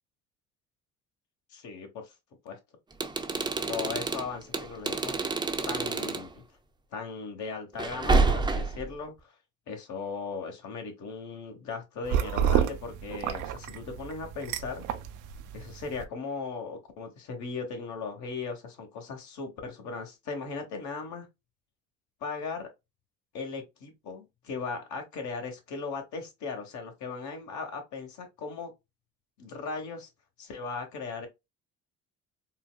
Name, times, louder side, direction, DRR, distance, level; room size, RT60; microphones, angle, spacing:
voice 1, 1.5-2.1 2.4-2.6 3.7-5.2 5.6-6.4 6.9-9.3 9.7-14.9 15.5-21.3 22.2-22.7 23.3-28.7 29.4-30.1 30.4-31.3, left 4 dB, 70° left, 1.1 m, -37 dB
sound 1, 2.9-6.3 7.8-8.9, right 3 dB, 15° right, 0.5 m, -28 dB
sound 2, 12.0-16.0, right 9 dB, 75° right, 0.5 m, -30 dB
3.9 x 2.2 x 2.2 m
supercardioid pair, 80°, 31 cm